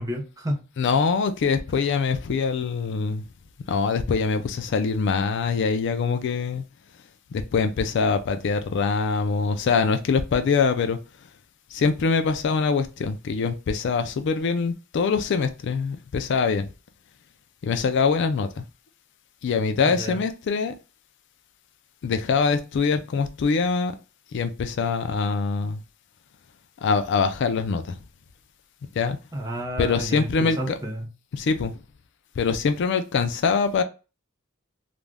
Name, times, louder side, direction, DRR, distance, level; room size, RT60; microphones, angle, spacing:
voice 1, 0.0-0.6 19.8-20.2 29.3-31.1, equal, 15° right, 0.6 m, -31 dB
voice 2, 0.8-3.2 3.7-6.6 7.3-11.0 11.7-16.7 17.6-18.6 19.4-20.7 22.0-23.9 24.3-25.8 26.8-28.0 29.0-29.2 29.8-30.8 31.3-31.8 32.4-33.8, left 5 dB, 60° left, 0.4 m, -24 dB
2.5 x 2.2 x 3.2 m
head